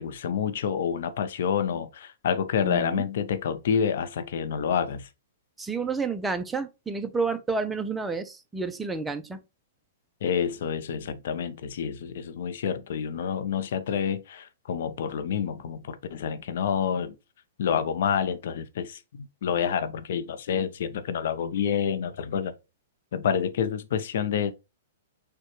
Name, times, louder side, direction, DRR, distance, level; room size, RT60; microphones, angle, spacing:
voice 1, 0.0-5.1 10.2-17.1 17.6-22.5 23.1-24.5, left 7 dB, 65° left, 0.6 m, -28 dB
voice 2, 2.6-3.0 5.6-9.4, right 4 dB, 10° right, 0.5 m, -30 dB
6.6 x 2.2 x 3.1 m
hypercardioid pair, 140°, 0 cm